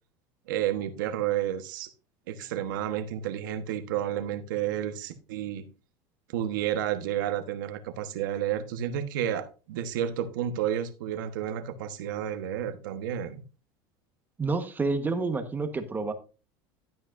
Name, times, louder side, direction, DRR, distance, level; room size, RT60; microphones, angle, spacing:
voice 1, 0.5-1.9 2.3-5.7 6.3-13.4, right 10 dB, 90° right, 1.2 m, -31 dB
voice 2, 14.4-16.1, right 3 dB, 20° right, 1.3 m, -29 dB
12.5 x 8.9 x 2.6 m
supercardioid pair, 125°, 10 cm